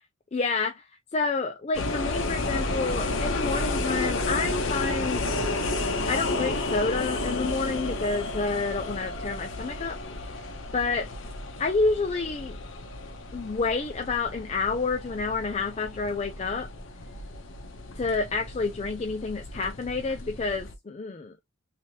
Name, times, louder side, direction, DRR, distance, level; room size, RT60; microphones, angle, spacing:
voice 1, 0.3-0.8 1.1-5.3 6.1-10.0 10.7-11.1 11.6-12.6 13.3-16.7 18.0-21.3, left 4 dB, 30° left, 0.4 m, -29 dB
sound 1, 1.7-20.7, left 2 dB, 70° left, 0.8 m, -32 dB
3.3 x 2.8 x 2.7 m
head